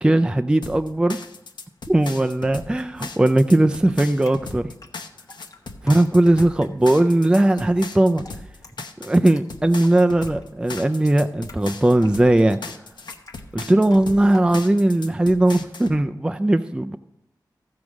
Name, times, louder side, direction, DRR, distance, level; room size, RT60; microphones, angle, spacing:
voice 1, 0.0-1.2 1.9-4.7 5.8-8.2 9.0-12.6 13.5-17.0, right 1 dB, 10° right, 7 dB, 0.4 m, -18 dB
sound 1, 0.6-16.0, left 3 dB, 80° left, 0.8 m, -38 dB
Drip, 3.9-14.9, left 2 dB, 50° left, 1.2 m, -47 dB
14.0 x 4.8 x 6.2 m, 0.87 s
wide cardioid pair, 95°, 8 cm